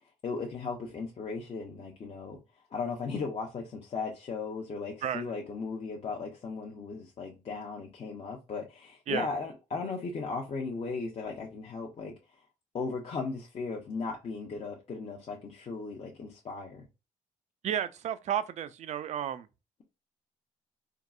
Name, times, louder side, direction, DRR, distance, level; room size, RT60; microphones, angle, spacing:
voice 1, 0.2-2.4 2.7-12.1 12.7-16.8, left 4 dB, 45° left, 0.6 m, -36 dB
voice 2, 17.6-19.5, right 9 dB, 55° right, 0.4 m, -32 dB
3.6 x 2.0 x 2.3 m
cardioid pair, 75°, 14 cm